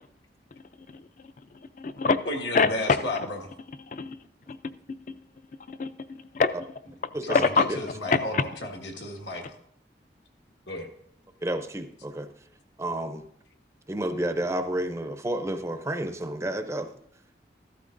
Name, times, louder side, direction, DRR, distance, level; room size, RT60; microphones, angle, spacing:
voice 1, 0.9-2.2 2.5-3.0 3.8-4.2 4.5-4.6 4.9-5.2 5.7-6.5 7.3-8.5, left 4 dB, 45° left, 14 dB, 0.4 m, -26 dB
voice 2, 2.2-3.4 7.2-7.4 7.7-9.6 10.7-10.9, left 1 dB, 80° left, 1 dB, 1.6 m, -33 dB
voice 3, 11.4-12.3 12.8-13.2 13.9-16.9, right 1 dB, 15° right, 7 dB, 0.5 m, -30 dB
14.5 x 12.0 x 2.5 m, 0.71 s
head